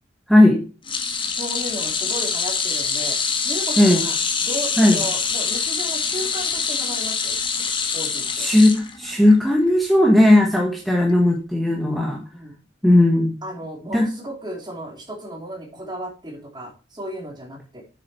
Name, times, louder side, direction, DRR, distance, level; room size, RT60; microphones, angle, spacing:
voice 1, 0.3-0.6 3.8-4.0 4.8-5.0 8.4-12.2 12.8-13.3 13.9-14.1, left 1 dB, ahead, 0 dB, 1.3 m, -16 dB
sound 1, 0.9-9.3 9.7-9.9 11.1-11.2, left 5 dB, 25° left, 1.4 m, -25 dB
voice 2, 1.3-3.2 3.4-7.4 7.9-8.5 12.3-12.5 13.4-17.8, equal, 25° right, 1 dB, 3.1 m, -34 dB
8.4 x 6.8 x 4.3 m, 0.34 s
head